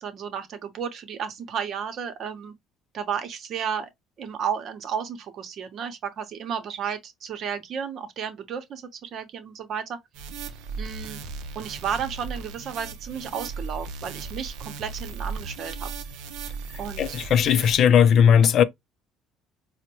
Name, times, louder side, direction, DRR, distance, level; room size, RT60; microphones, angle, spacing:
voice 1, 0.0-2.5 2.9-3.9 4.2-10.0 10.8-11.2 11.5-15.9 16.8-17.2, right 7 dB, 55° right, 0.8 m, -33 dB
sound 1, 10.1-17.8, right 4 dB, 80° right, 0.5 m, -36 dB
voice 2, 17.0-18.6, left 8 dB, 55° left, 0.4 m, -17 dB
4.2 x 2.1 x 2.8 m
supercardioid pair, 90°, 0 cm